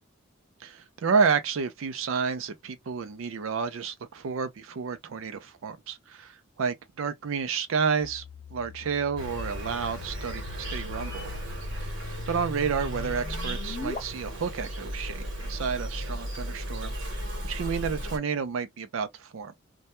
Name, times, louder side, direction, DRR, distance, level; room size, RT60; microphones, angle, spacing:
voice 1, 0.6-8.2 8.5-11.3 11.8-11.9 12.3-19.5, right 5 dB, 80° right, 0.4 m, -30 dB
sound 1, 8.0-14.0, left 2 dB, 35° left, 0.6 m, -42 dB
Insect, 9.2-18.2, equal, 65° right, 1.0 m, -35 dB
2.2 x 2.1 x 2.8 m
head